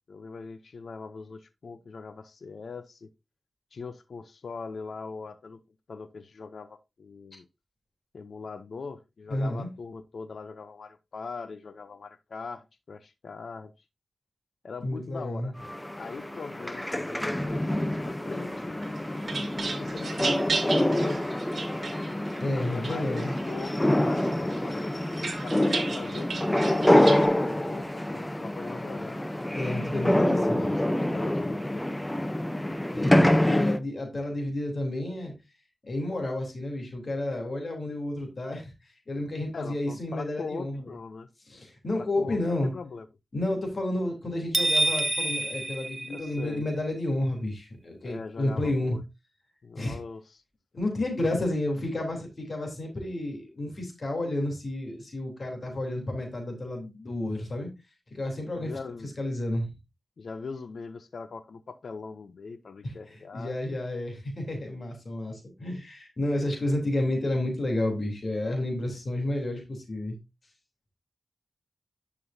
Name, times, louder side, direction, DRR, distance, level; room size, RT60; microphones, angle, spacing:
voice 1, 0.1-3.1 3.7-5.6 5.9-7.5 8.1-13.7 14.6-15.5 16.0-18.8 19.6-21.2 22.5-29.2 30.3-32.0 39.5-41.3 41.9-43.1 46.0-46.6 48.0-49.0 49.6-50.4 58.5-59.1 60.2-63.6, left 4 dB, 70° left, 0.7 m, -41 dB
voice 2, 9.3-9.7 14.8-15.5 22.4-23.4 29.5-30.8 32.9-35.3 35.9-38.7 39.1-40.8 41.5-42.7 43.3-49.0 49.8-50.0 50.7-57.7 58.1-58.7 59.0-59.7 62.8-70.2, left 1 dB, 50° left, 3.4 m, -31 dB
sound 1, 15.6-33.8, left 1 dB, 10° left, 0.7 m, -26 dB
sound 2, 18.8-22.4 22.8-23.7 24.2-27.3, right 4 dB, 65° right, 1.9 m, -34 dB
sound 3, 44.5-46.7, right 1 dB, 25° right, 1.0 m, -27 dB
11.0 x 6.1 x 2.7 m
cardioid pair, 65°, 0 cm